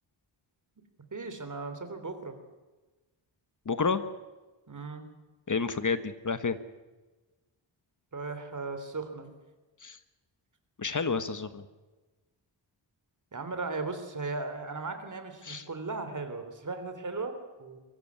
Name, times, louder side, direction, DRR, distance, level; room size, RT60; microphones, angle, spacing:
voice 1, 1.1-2.3 4.7-5.1 8.1-9.3 13.3-17.8, right 3 dB, 40° right, 8 dB, 3.4 m, -37 dB
voice 2, 3.6-4.0 5.5-6.6 9.8-10.0 10.8-11.6 15.4-15.6, left 4 dB, 40° left, 12 dB, 1.4 m, -30 dB
23.5 x 15.0 x 9.7 m, 1.2 s
wide cardioid pair, 115°, 45 cm